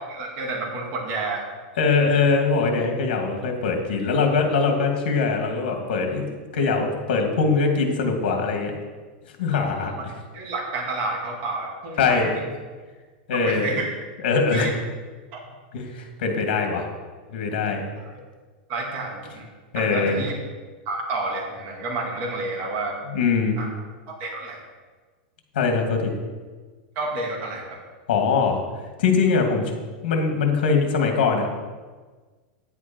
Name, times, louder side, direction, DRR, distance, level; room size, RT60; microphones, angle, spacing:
voice 1, 0.0-1.5 9.5-10.0 10.3-12.5 13.3-13.9 14.5-14.7 15.3-15.4 18.0-18.2 18.7-19.4 19.7-20.3 20.9-23.0 23.6-23.7 24.1-24.6 27.0-27.8, right 3 dB, 40° right, -1 dB, 2.1 m, -30 dB
voice 2, 1.8-6.2 6.5-8.8 9.4-10.1 12.0-12.3 13.3-13.7 14.2-14.7 15.7-16.8 17.3-17.8 19.7-20.2 23.1-23.6 25.5-26.1 28.1-28.6 29.0-29.8 30.0-31.5, left 4 dB, 70° left, 3 dB, 2.3 m, -22 dB
9.9 x 8.3 x 4.5 m, 1.4 s
supercardioid pair, 160°, 5 cm